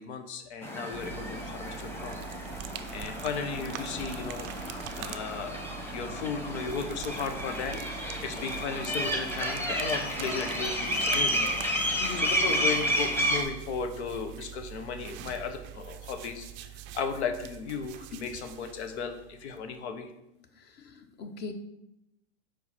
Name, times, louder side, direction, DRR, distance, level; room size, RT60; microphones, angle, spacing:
voice 1, 0.0-2.2 2.9-4.5 5.0-5.6 5.9-7.8 8.2-11.5 11.9-16.5 16.9-20.1, left 5 dB, 80° left, 7 dB, 1.1 m, -35 dB
sound 1, 0.6-13.4, equal, 5° left, 1.0 m, -31 dB
sound 2, 0.9-19.8, right 12 dB, 35° right, 0.4 m, -44 dB
voice 2, 12.0-12.7 18.1-18.3 20.5-21.5, left 4 dB, 30° left, 7 dB, 0.8 m, -42 dB
4.9 x 4.6 x 5.8 m, 0.86 s
supercardioid pair, 125°, 33 cm